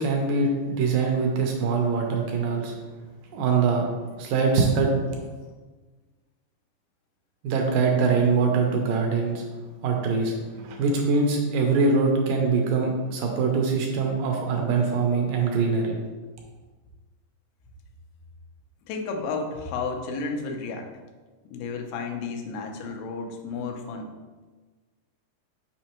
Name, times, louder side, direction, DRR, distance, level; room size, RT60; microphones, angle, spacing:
voice 1, 0.0-2.7 3.3-3.9 4.2-4.9 7.4-9.4 9.8-16.0, right 4 dB, 80° right, 1 dB, 2.1 m, -23 dB
voice 2, 18.9-20.9 21.5-24.1, left 4 dB, 85° left, 3 dB, 2.6 m, -32 dB
6.4 x 5.1 x 2.9 m, 1.3 s
omnidirectional pair, 4.2 m